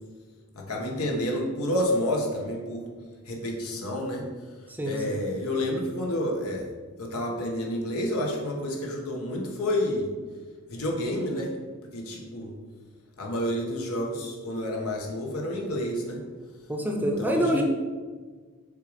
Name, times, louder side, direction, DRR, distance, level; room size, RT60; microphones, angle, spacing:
voice 1, 0.5-2.8 3.3-4.3 4.9-6.7 7.0-10.1 10.7-11.5 11.9-12.5 13.2-16.2 17.0-17.6, left 1 dB, 85° left, 0 dB, 1.3 m, -29 dB
voice 2, 4.7-5.2 16.7-17.6, equal, 10° right, 2 dB, 0.7 m, -26 dB
6.5 x 3.9 x 5.1 m, 1.5 s
head